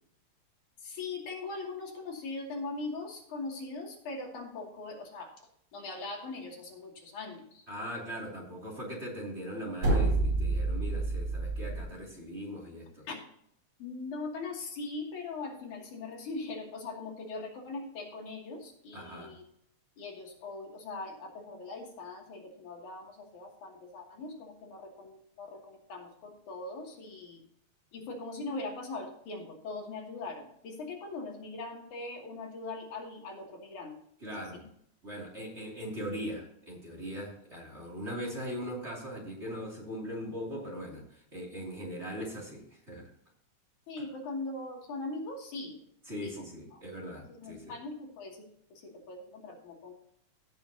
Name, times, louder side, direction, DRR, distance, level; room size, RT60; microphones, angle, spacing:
voice 1, 0.8-5.3 5.7-7.7 13.1-13.2 13.8-19.4 20.0-27.4 27.9-33.9 34.4-34.6 43.9-45.8 46.2-46.3 46.7-46.8 47.4-48.5 48.8-49.9, left 3 dB, 85° left, -1 dB, 4.0 m, -41 dB
voice 2, 7.7-13.1 18.9-19.3 34.2-34.7 35.0-43.1 46.1-47.8, equal, 25° right, -2 dB, 2.9 m, -40 dB
sound 1, 9.8-11.9, right 2 dB, 80° right, 6.0 m, -28 dB
16.5 x 7.5 x 2.8 m, 0.70 s
omnidirectional pair, 3.3 m